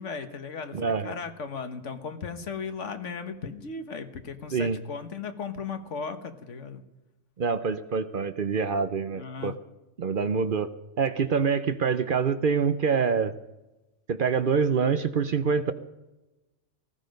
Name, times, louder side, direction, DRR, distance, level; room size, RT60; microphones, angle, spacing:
voice 1, 0.0-6.8 9.1-9.5, left 5 dB, 75° left, 8 dB, 1.5 m, -36 dB
voice 2, 0.7-1.1 4.5-4.8 7.4-9.6 10.0-10.7 11.0-13.3 14.1-15.7, right 5 dB, 50° right, 12 dB, 0.8 m, -25 dB
18.5 x 14.5 x 5.3 m, 1.0 s
omnidirectional pair, 1.2 m